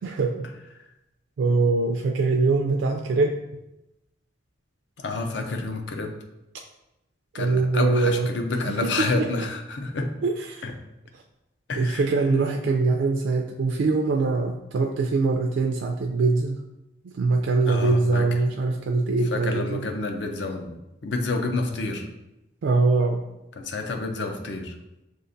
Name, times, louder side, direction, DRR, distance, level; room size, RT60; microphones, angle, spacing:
voice 1, 0.0-0.5 1.4-3.4 7.4-8.3 8.6-9.3 10.2-10.6 11.7-16.6 17.0-19.8 22.6-23.2, right 3 dB, 75° right, 3 dB, 0.3 m, -23 dB
voice 2, 5.0-6.2 7.3-10.1 10.6-10.7 11.7-12.0 17.7-18.3 19.3-22.1 23.6-24.8, left 3 dB, 65° left, 4 dB, 0.6 m, -29 dB
6.3 x 2.4 x 2.6 m, 0.91 s
head